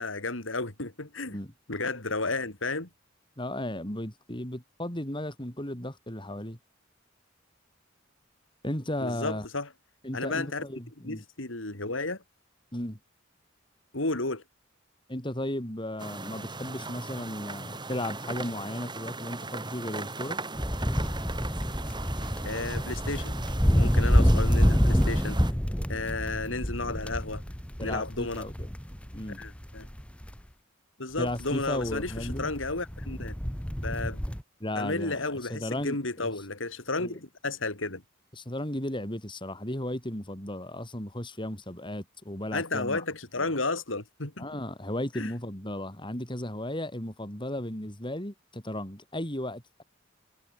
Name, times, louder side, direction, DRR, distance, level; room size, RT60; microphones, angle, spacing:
voice 1, 0.0-1.4 1.7-2.9 9.0-9.7 10.1-10.6 11.0-12.2 13.9-14.4 22.4-23.4 23.7-25.4 25.9-27.4 27.8-28.5 29.4-29.9 31.0-33.3 33.8-34.2 34.7-38.0 42.5-44.5 45.1-45.3, left 3 dB, 80° left, 3.9 m, -32 dB
voice 2, 3.4-6.6 8.6-9.5 10.0-11.2 12.7-13.0 15.1-20.4 27.8-28.7 29.1-29.4 31.2-32.5 34.6-36.3 37.0-37.2 38.4-43.0 43.4-43.5 44.4-49.8, left 1 dB, 25° left, 5.4 m, -35 dB
sound 1, 16.0-25.5, right 3 dB, 25° right, 7.7 m, -39 dB
sound 2, 20.6-30.3 31.3-34.4, equal, 5° left, 1.3 m, -27 dB
head